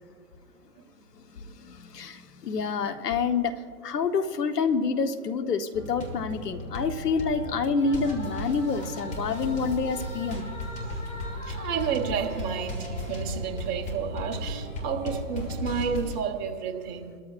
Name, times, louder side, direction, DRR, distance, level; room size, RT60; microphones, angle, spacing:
voice 1, 1.6-10.5, left 5 dB, 80° left, 8 dB, 1.3 m, -28 dB
sound 1, 5.7-16.2, left 1 dB, 15° left, 1.7 m, -35 dB
voice 2, 11.4-17.1, right 7 dB, 30° right, 3 dB, 1.3 m, -31 dB
27.0 x 13.5 x 2.5 m, 2.2 s
hypercardioid pair, 140°, 47 cm